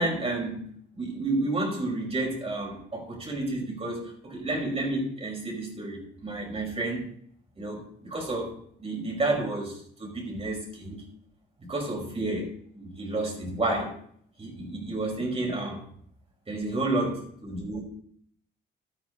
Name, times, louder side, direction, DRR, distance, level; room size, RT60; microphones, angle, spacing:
voice 1, 0.0-7.1 7.6-8.5 8.8-11.0 11.6-12.5 12.7-13.9 14.4-15.8 16.5-17.8, right 2 dB, 30° right, -1 dB, 5.8 m, -31 dB
13.5 x 10.0 x 4.2 m, 0.62 s
cardioid pair, 90°, 20 cm